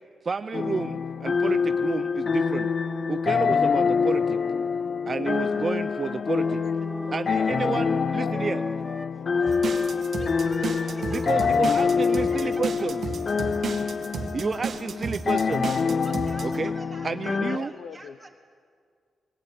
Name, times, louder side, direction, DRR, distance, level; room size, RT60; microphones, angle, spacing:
voice 1, 0.2-2.7 3.1-4.4 5.1-6.6 7.1-8.6 11.1-13.1 14.3-15.7 16.4-16.7 17.0-17.7, right 4 dB, 40° right, 11 dB, 0.5 m, -30 dB
sound 1, 0.5-17.6, left 5 dB, 50° left, 0.5 m, -26 dB
voice 2, 5.2-10.3 10.8-11.3 17.4-18.3, left 7 dB, 80° left, 13 dB, 0.7 m, -44 dB
Wind instrument woodwind instrument, 5.2-9.1 9.4-13.7, left 1 dB, 10° left, 0.7 m, -41 dB
sound 2, 9.5-16.6, right 5 dB, 60° right, 1.7 m, -33 dB
voice 3, 10.2-11.9 12.3-12.6 16.0-18.3, right 2 dB, 15° right, 0 dB, 3.3 m, -46 dB
22.0 x 15.5 x 9.3 m, 2.1 s
cardioid pair, 85°, 0 cm